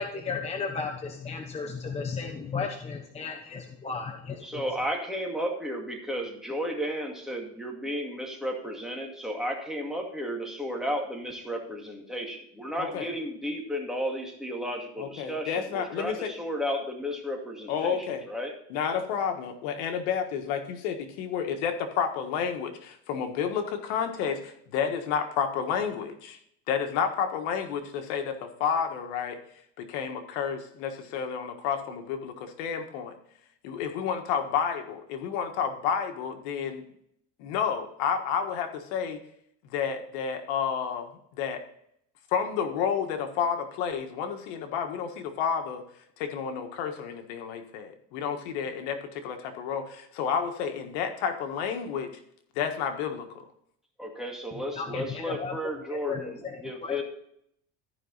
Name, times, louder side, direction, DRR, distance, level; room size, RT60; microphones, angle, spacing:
voice 1, 0.0-4.6 54.5-55.6 55.9-57.0, left 5 dB, 20° left, 3 dB, 0.9 m, -35 dB
voice 2, 4.4-18.5 54.0-57.0, equal, ahead, 0 dB, 2.2 m, -33 dB
voice 3, 12.8-13.1 15.0-16.3 17.7-18.3 18.7-26.4 26.7-29.4 29.8-33.1 33.6-36.8 37.4-39.2 39.6-41.6 42.3-45.8 46.2-52.1 52.5-53.4, left 7 dB, 90° left, 6 dB, 1.6 m, -30 dB
14.0 x 5.4 x 4.0 m, 0.71 s
cardioid pair, 135°, 33 cm